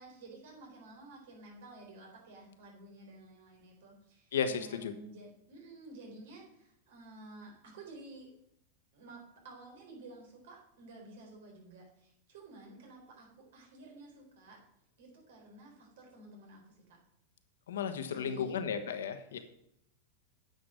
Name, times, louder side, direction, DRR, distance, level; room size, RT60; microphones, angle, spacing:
voice 1, 0.0-8.3 8.9-14.6 15.0-17.0 18.1-18.6 19.3-19.4, right 2 dB, 70° right, 0 dB, 4.1 m, -52 dB
voice 2, 4.3-4.9 17.7-19.4, left 7 dB, 85° left, 8 dB, 1.3 m, -34 dB
9.3 x 6.1 x 6.4 m, 0.76 s
hypercardioid pair, 125°, 0 cm